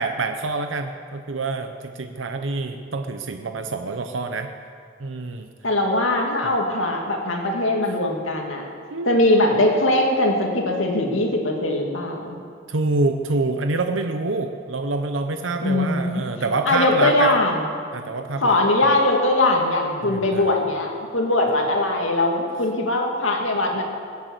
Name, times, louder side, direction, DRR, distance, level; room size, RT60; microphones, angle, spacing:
voice 1, 0.0-4.5 5.0-5.5 6.4-6.5 8.9-9.2 12.7-17.3 17.9-18.6 20.0-20.6, right 3 dB, 70° right, 6 dB, 0.8 m, -26 dB
voice 2, 5.6-8.6 9.0-12.4 15.6-16.2 16.7-17.7 18.4-23.8, left 2 dB, 80° left, 1 dB, 2.4 m, -21 dB
21.0 x 8.3 x 8.2 m, 2.2 s
head